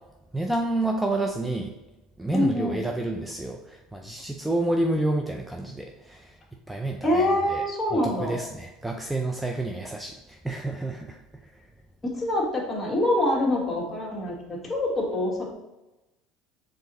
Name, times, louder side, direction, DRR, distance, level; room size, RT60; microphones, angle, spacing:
voice 1, 0.3-1.7 2.2-6.4 6.7-7.6 7.9-11.2, right 2 dB, 5° right, 3 dB, 0.4 m, -29 dB
voice 2, 2.3-2.8 7.0-8.4 12.0-15.5, left 1 dB, 25° left, -2 dB, 1.6 m, -25 dB
4.7 x 3.8 x 3.0 m, 1.0 s
supercardioid pair, 90°, 0 cm